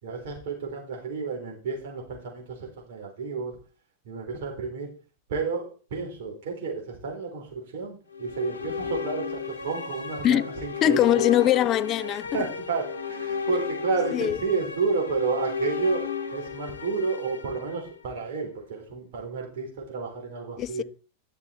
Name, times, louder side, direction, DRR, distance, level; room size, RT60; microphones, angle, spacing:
voice 1, 0.0-3.6 4.0-4.9 5.3-11.2 12.3-20.8, right 4 dB, 55° right, 4.2 m, -31 dB
sound 1, 8.1-18.3, left 6 dB, 75° left, 1.2 m, -34 dB
voice 2, 10.8-12.3 14.1-14.4 20.6-20.8, left 12 dB, 30° left, 0.4 m, -22 dB
11.0 x 6.9 x 4.6 m
figure-of-eight pair, 90°, 0 cm